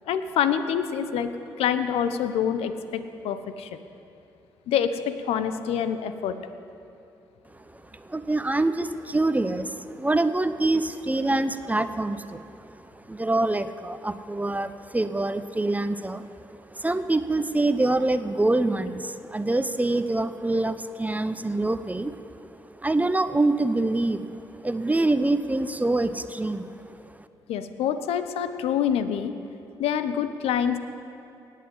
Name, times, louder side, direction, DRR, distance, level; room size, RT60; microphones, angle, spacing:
voice 1, 0.1-1.3 1.6-3.8 4.7-6.4 27.5-29.3 29.8-30.8, left 8 dB, 70° left, 11 dB, 0.9 m, -26 dB
voice 2, 7.7-22.2 22.8-27.2, right 2 dB, 15° right, 11 dB, 0.8 m, -26 dB
18.5 x 8.4 x 7.7 m, 2.7 s
hypercardioid pair, 45°, 11 cm